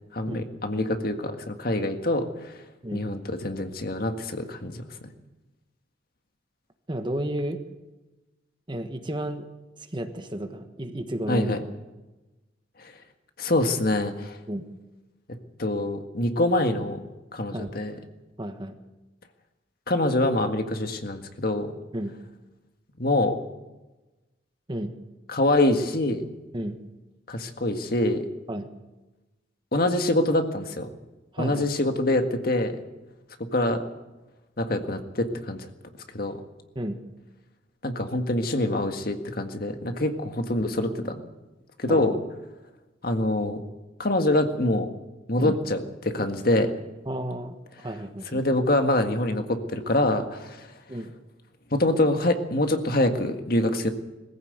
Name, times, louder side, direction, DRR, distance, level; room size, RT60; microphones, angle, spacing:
voice 1, 0.1-2.5 2.9-4.8 11.3-11.6 13.4-14.4 15.6-17.0 17.3-17.9 19.9-21.7 23.0-23.4 25.3-26.3 27.3-28.3 29.7-30.9 31.4-32.7 33.5-33.8 34.6-35.7 36.1-36.4 37.8-41.1 41.8-42.2 43.0-43.6 44.0-44.9 45.3-46.7 48.3-50.7 51.7-53.9, left 1 dB, 50° left, 6 dB, 1.8 m, -25 dB
voice 2, 6.9-7.6 8.7-9.5 9.8-11.5 14.5-14.6 17.5-17.7 18.4-18.7 21.9-22.1 24.7-24.9 26.5-26.8 28.5-28.7 31.3-31.7 36.7-37.0 41.9-42.2 45.4-45.6 47.0-47.5 47.8-48.4 50.9-51.1, right 1 dB, 25° right, 7 dB, 1.4 m, -32 dB
22.0 x 15.0 x 8.1 m, 1.1 s
head